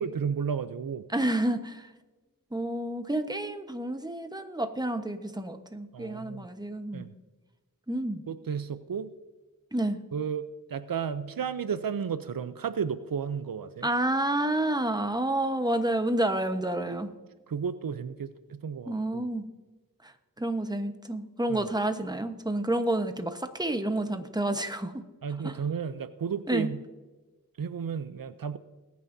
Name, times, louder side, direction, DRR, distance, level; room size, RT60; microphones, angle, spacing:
voice 1, 0.0-1.1 5.9-6.5 6.9-7.1 8.3-9.1 10.1-13.9 17.5-19.3 21.5-21.6 25.2-26.8 27.6-28.6, right 7 dB, 80° right, 13 dB, 0.6 m, -33 dB
voice 2, 1.1-1.9 2.5-7.1 7.9-8.2 9.7-10.0 13.8-17.1 18.9-19.5 20.0-20.1 20.4-25.0 25.4-25.6 26.5-26.7, right 1 dB, 10° right, 8 dB, 1.1 m, -29 dB
21.0 x 9.5 x 2.7 m, 1.2 s
wide cardioid pair, 40°, 34 cm